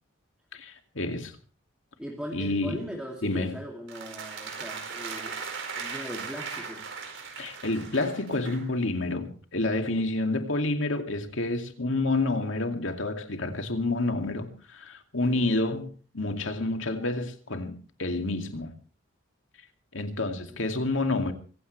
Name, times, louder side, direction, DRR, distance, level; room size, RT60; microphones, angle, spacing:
voice 1, 0.5-1.4 2.3-2.9 3.2-3.6 7.4-18.7 19.9-21.3, left 2 dB, 70° left, 2.4 m, -29 dB
voice 2, 2.0-5.4 5.8-6.8 9.9-10.0 15.3-15.5 20.5-20.6, equal, 5° right, 2.5 m, -39 dB
sound 1, 3.9-8.7, right 5 dB, 65° right, 4.7 m, -38 dB
24.5 x 16.0 x 3.3 m
head